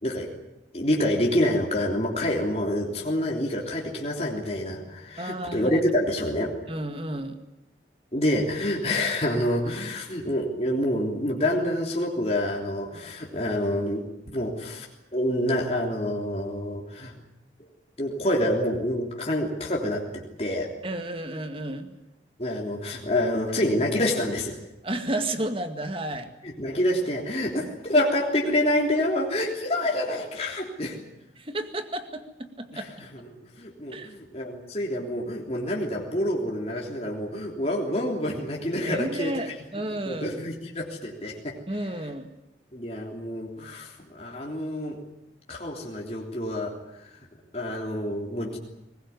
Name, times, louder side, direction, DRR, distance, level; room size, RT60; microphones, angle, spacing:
voice 1, 0.7-6.5 8.1-14.9 15.1-17.1 18.0-20.7 22.4-24.6 26.4-31.0 32.7-32.8 33.1-39.5 40.0-41.6 42.7-45.0 45.5-46.7 47.0-47.1 47.5-48.6, left 1 dB, 35° left, -1 dB, 3.4 m, -27 dB
voice 2, 5.2-5.8 6.7-7.4 20.8-21.9 24.8-26.3 27.6-27.7 31.4-32.9 33.9-34.2 38.9-40.4 41.7-42.3, right 1 dB, 30° right, 7 dB, 2.0 m, -32 dB
22.0 x 20.0 x 9.5 m, 0.91 s
head